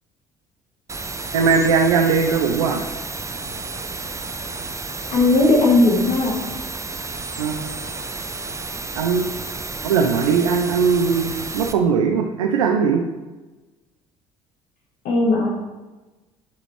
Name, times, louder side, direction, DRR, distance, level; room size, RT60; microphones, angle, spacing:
sound 1, 0.9-11.7, right 3 dB, 15° right, 0.7 m, -32 dB
voice 1, 1.3-2.8 7.4-7.6 9.0-9.3 9.8-13.0, right 5 dB, 75° right, 3 dB, 0.6 m, -19 dB
voice 2, 5.1-6.4 15.0-15.5, left 2 dB, 50° left, -2 dB, 1.3 m, -17 dB
10.0 x 5.0 x 3.2 m, 1.2 s
figure-of-eight pair, 55°, 17 cm